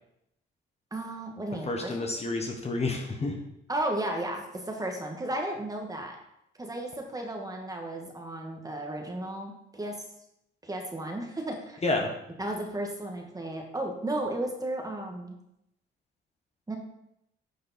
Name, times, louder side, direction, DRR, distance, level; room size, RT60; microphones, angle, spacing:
voice 1, 0.9-2.1 3.7-6.2 6.6-10.0 10.6-11.8 12.4-15.3 16.7-16.8, right 1 dB, 20° right, 2 dB, 1.6 m, -34 dB
voice 2, 1.6-3.4 11.8-12.1, left 2 dB, 30° left, 2 dB, 1.4 m, -29 dB
9.8 x 5.1 x 4.3 m, 0.80 s
cardioid pair, 90°, 20 cm